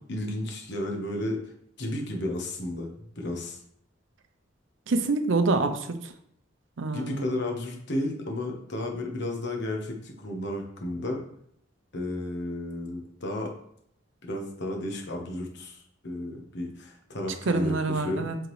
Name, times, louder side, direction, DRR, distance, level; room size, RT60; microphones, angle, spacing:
voice 1, 0.1-1.4 1.8-2.9 3.2-3.6 6.9-11.2 11.9-13.5 14.2-18.3, left 1 dB, 60° left, 1 dB, 1.1 m, -33 dB
voice 2, 4.9-6.1 6.8-7.3 17.5-18.4, right 3 dB, 65° right, 8 dB, 0.6 m, -26 dB
7.9 x 3.8 x 3.2 m, 0.69 s
head